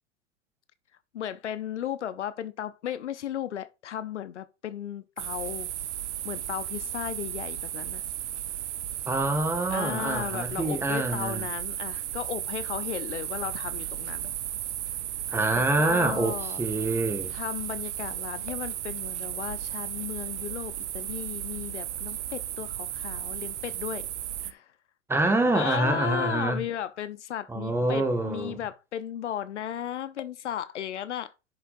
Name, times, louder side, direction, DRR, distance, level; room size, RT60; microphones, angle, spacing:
voice 1, 1.1-5.7 6.2-8.0 9.7-14.3 15.5-16.6 17.3-24.1 24.4-24.7 25.5-31.3, left 10 dB, 70° left, 0.9 m, -35 dB
sound 1, 5.2-24.5, right 12 dB, 70° right, 0.7 m, -34 dB
voice 2, 9.1-11.4 15.3-17.3 25.1-26.6 27.5-28.6, right 2 dB, 5° right, 1.7 m, -26 dB
11.0 x 6.6 x 2.6 m
hypercardioid pair, 110°, 37 cm